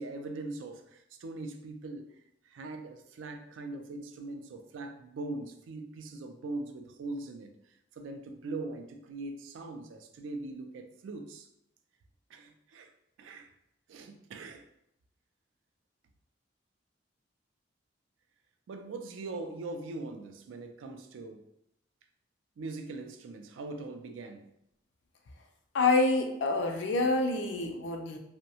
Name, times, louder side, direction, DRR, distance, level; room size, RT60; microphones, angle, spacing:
voice 1, 0.0-2.1 2.4-11.5 12.3-12.9 13.2-13.5 13.9-14.6 18.7-21.5 22.6-24.5, right 2 dB, 85° right, 6 dB, 0.3 m, -41 dB
voice 2, 25.7-28.2, left 3 dB, 70° left, 5 dB, 0.4 m, -27 dB
2.6 x 2.1 x 2.7 m, 0.79 s
head